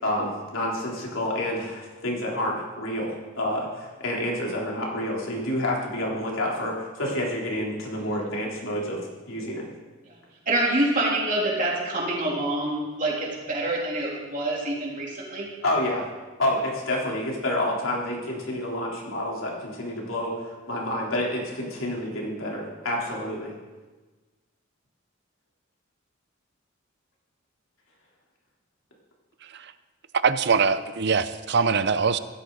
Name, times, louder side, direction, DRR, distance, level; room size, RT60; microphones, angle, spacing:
voice 1, 0.0-9.7 15.6-16.1 16.4-23.5, left 1 dB, 80° left, -3 dB, 3.7 m, -29 dB
voice 2, 10.4-15.5, right 1 dB, 40° right, -3 dB, 3.5 m, -26 dB
voice 3, 30.2-32.2, right 5 dB, 60° right, 13 dB, 0.7 m, -23 dB
15.5 x 13.5 x 4.1 m, 1.3 s
head